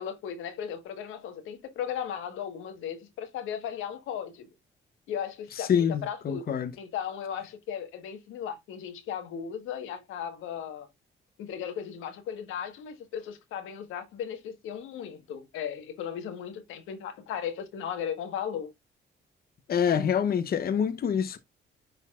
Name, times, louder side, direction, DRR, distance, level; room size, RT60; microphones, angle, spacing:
voice 1, 0.0-4.5 5.1-10.9 11.4-18.7, left 8 dB, 90° left, 1.4 m, -36 dB
voice 2, 5.6-6.7 19.7-21.4, left 8 dB, 50° left, 0.8 m, -26 dB
10.0 x 4.0 x 2.4 m
cardioid pair, 90°, 20 cm